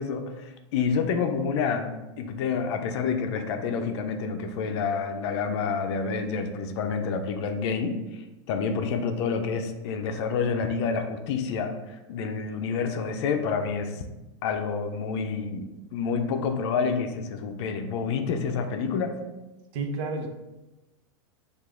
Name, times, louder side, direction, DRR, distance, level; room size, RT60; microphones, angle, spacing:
voice 1, 0.0-14.0 14.4-19.2, left 5 dB, 60° left, 6 dB, 0.5 m, -28 dB
voice 2, 19.7-20.3, right 3 dB, 55° right, 3 dB, 0.8 m, -30 dB
4.8 x 2.5 x 3.7 m, 1.0 s
supercardioid pair, 135°, 16 cm